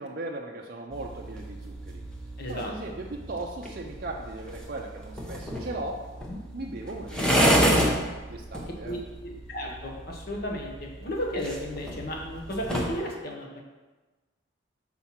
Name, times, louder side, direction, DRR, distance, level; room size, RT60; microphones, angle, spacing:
voice 1, 0.0-2.0 2.5-6.0 6.5-7.7 8.3-9.0, right 2 dB, 50° right, -1 dB, 0.5 m, -37 dB
sound 1, 0.9-13.0, equal, 5° left, 0.8 m, -30 dB
voice 2, 2.4-2.7 6.3-6.4 8.6-9.0 9.2-13.6, equal, 50° left, 0 dB, 0.9 m, -34 dB
6.0 x 4.4 x 5.6 m, 1.2 s
head